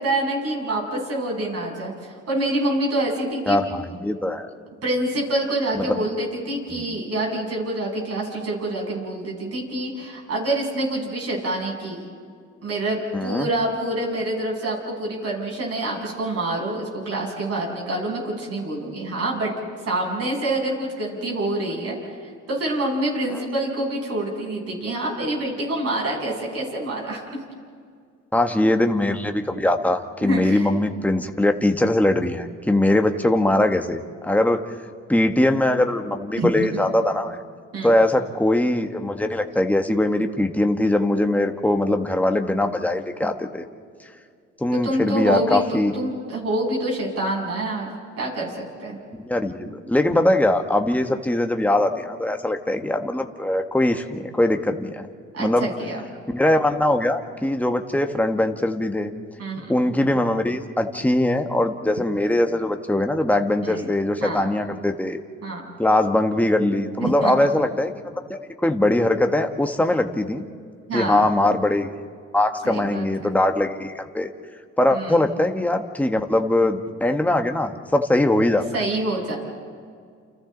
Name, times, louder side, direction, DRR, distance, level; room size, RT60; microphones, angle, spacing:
voice 1, 0.0-3.6 4.8-12.0 12.6-19.5 19.9-22.2 22.5-27.4 28.6-28.7 30.2-30.7 36.4-36.5 37.7-37.9 44.7-48.5 48.8-49.0 49.6-49.7 55.3-56.0 59.4-59.7 63.6-63.9 64.2-64.5 65.4-65.7 67.0-67.3 70.9-71.2 72.6-73.3 74.9-75.2 78.7-79.4, right 1 dB, 55° right, -2 dB, 7.6 m, -26 dB
voice 2, 3.5-4.5 5.7-6.0 6.7-6.8 13.1-13.5 23.3-23.4 28.3-34.6 35.1-37.4 37.8-43.6 44.6-45.9 49.2-55.1 55.4-55.7 56.3-59.1 59.7-65.2 65.8-67.9 68.3-70.5 70.9-71.9 72.3-74.3 74.8-78.8, left 1 dB, 5° left, 5 dB, 1.5 m, -21 dB
29.5 x 29.0 x 4.0 m, 2.1 s
cardioid pair, 90°, 30 cm